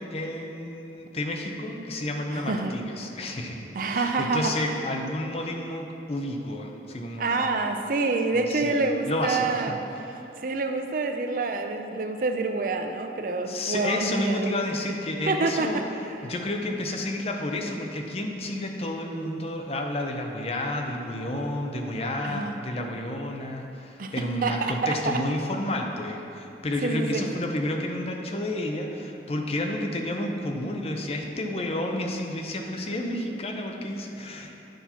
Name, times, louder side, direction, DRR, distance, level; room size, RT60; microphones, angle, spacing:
voice 1, 0.0-7.5 8.5-9.6 10.2-10.3 13.5-15.8 16.2-34.5, left 1 dB, 35° left, 2 dB, 0.6 m, -31 dB
voice 2, 2.3-2.8 3.7-4.5 7.2-9.8 10.4-14.7 15.3-15.8 22.2-22.6 24.0-24.1 24.4-25.2 26.8-27.2, right 3 dB, 50° right, 5 dB, 0.5 m, -27 dB
9.2 x 4.4 x 5.6 m, 2.9 s
head